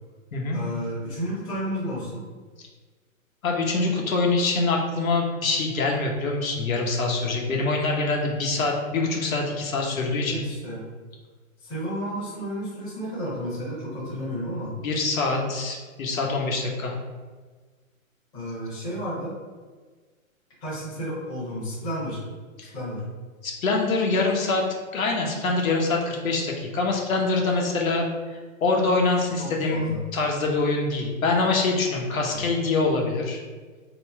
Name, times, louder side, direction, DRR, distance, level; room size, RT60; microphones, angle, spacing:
voice 1, 0.5-2.3 10.2-10.9 11.6-14.8 18.3-19.4 20.6-22.2 22.7-23.1 29.4-30.1 32.3-32.4, equal, 10° left, -9 dB, 0.8 m, -32 dB
voice 2, 3.4-10.5 14.8-16.9 22.6-22.7 23.4-24.6 24.9-28.1 28.3-33.4, left 3 dB, 75° left, 0 dB, 1.2 m, -24 dB
3.1 x 3.0 x 4.6 m, 1.4 s
hypercardioid pair, 165°, 42 cm